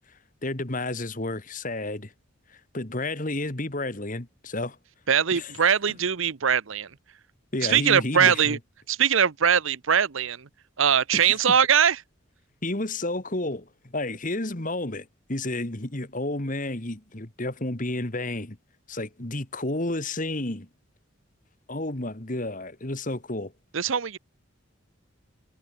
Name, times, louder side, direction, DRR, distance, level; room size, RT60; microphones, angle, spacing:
voice 1, 0.4-2.1 2.7-4.8 5.3-5.5 7.5-8.6 11.3-11.4 12.6-18.6 18.9-20.7 21.7-23.5, left 2 dB, 40° left, 1.8 m, -31 dB
voice 2, 5.1-6.9 7.6-8.6 8.9-10.5 10.8-12.0 23.7-24.2, right 8 dB, 70° right, 0.8 m, -22 dB
head